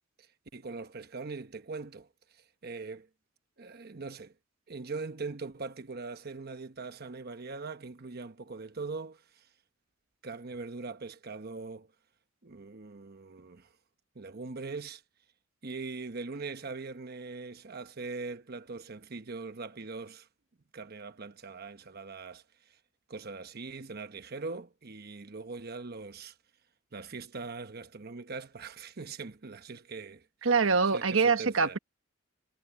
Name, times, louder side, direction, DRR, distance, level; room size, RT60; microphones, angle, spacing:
voice 1, 0.5-2.1 2.3-3.1 3.6-4.3 4.7-9.5 10.2-11.9 12.4-13.7 14.1-15.0 15.6-20.3 20.7-22.8 23.1-26.3 26.9-30.3 30.8-31.8, right 4 dB, 50° right, 1.0 m, -41 dB
voice 2, 30.4-31.8, right 5 dB, 90° right, 1.3 m, -24 dB
head